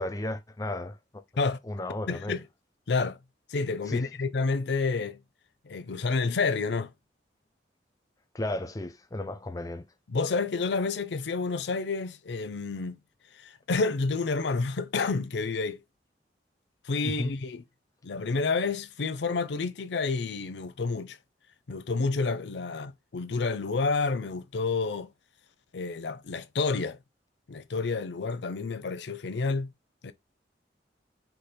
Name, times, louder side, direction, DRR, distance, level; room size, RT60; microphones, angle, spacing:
voice 1, 0.0-1.2 1.6-2.4 3.9-4.1 8.3-9.8 17.0-17.3, left 1 dB, 20° left, 0.5 m, -34 dB
voice 2, 2.1-2.4 2.9-3.2 3.5-5.2 5.7-6.9 10.1-13.0 13.4-15.8 16.9-17.6 18.0-21.2 21.7-25.1 25.7-27.0 27.5-29.7 30.0-30.1, left 4 dB, 70° left, 0.5 m, -29 dB
5.0 x 2.1 x 4.3 m
head